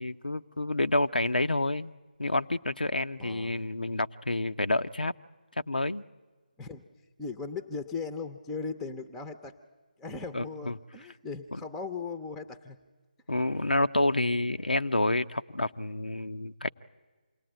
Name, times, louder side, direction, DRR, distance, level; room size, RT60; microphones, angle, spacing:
voice 1, 0.0-1.9 2.2-5.1 5.7-6.0 10.3-10.7 11.5-11.6 13.3-16.7, left 2 dB, 85° left, 9 dB, 0.7 m, -28 dB
voice 2, 3.2-3.6 6.6-6.8 7.2-9.6 10.0-12.8, left 4 dB, 5° left, 8 dB, 0.7 m, -38 dB
27.5 x 19.0 x 8.9 m, 1.3 s
figure-of-eight pair, 155°, 5 cm